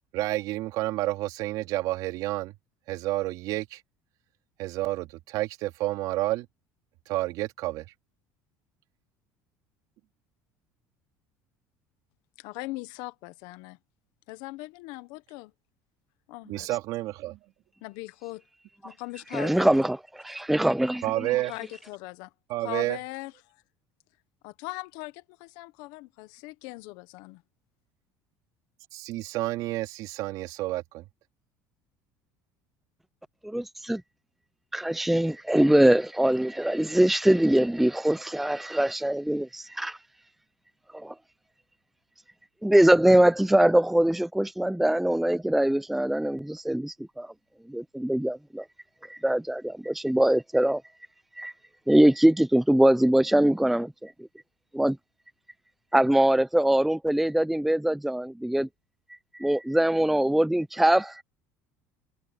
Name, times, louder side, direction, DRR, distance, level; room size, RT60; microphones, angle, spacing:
voice 1, 0.1-2.5 2.9-3.8 4.6-6.5 7.1-7.9 16.4-17.4 21.0-21.5 22.5-23.0 28.9-31.0, right 17 dB, 65° right, 2.7 m, -30 dB
voice 2, 12.4-13.8 14.3-15.5 16.3-16.7 17.8-18.4 18.8-19.7 21.5-22.3 22.6-23.6 24.4-27.4, left 21 dB, 75° left, 1.3 m, -40 dB
voice 3, 19.3-21.0 33.4-34.0 34.7-40.0 40.9-41.1 42.6-47.3 47.7-48.6 49.0-50.8 51.4-51.5 51.9-54.1 54.7-55.0 55.9-58.7 59.3-61.2, right 1 dB, 5° right, 0.6 m, -23 dB
cardioid pair, 120°, 7 cm